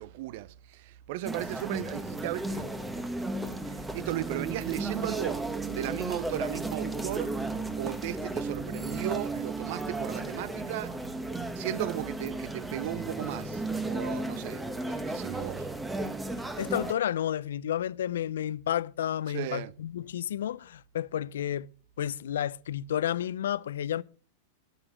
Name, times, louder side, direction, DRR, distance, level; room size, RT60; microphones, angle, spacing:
voice 1, 0.0-2.8 3.6-7.4 7.8-11.0 11.5-15.7 19.3-19.7, right 15 dB, 60° right, 0.5 m, -36 dB
sound 1, 1.2-16.9, right 2 dB, 10° right, 1.2 m, -34 dB
voice 2, 16.6-21.7 22.0-24.0, left 10 dB, 80° left, 0.4 m, -31 dB
11.0 x 8.9 x 5.0 m
hypercardioid pair, 115°, 0 cm